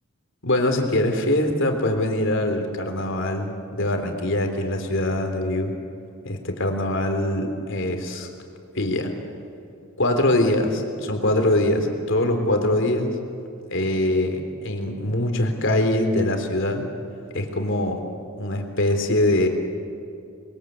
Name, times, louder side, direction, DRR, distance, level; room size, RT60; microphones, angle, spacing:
voice 1, 0.4-5.7 6.2-8.3 8.7-9.1 10.0-13.1 13.7-16.9 17.3-18.0 18.4-19.5, left 1 dB, 65° left, 5 dB, 3.6 m, -23 dB
29.0 x 22.5 x 8.2 m, 2.5 s
head